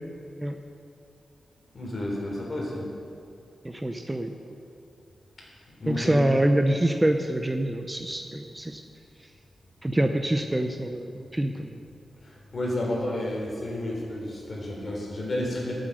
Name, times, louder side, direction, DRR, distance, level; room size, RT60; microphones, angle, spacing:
voice 1, 1.7-2.9 5.8-6.2 12.5-15.7, left 1 dB, 40° left, -3 dB, 3.6 m, -31 dB
voice 2, 3.6-4.3 5.9-8.8 9.8-11.8, right 1 dB, 15° right, 5 dB, 0.6 m, -25 dB
13.5 x 7.7 x 6.5 m, 2.4 s
wide cardioid pair, 110°, 0 cm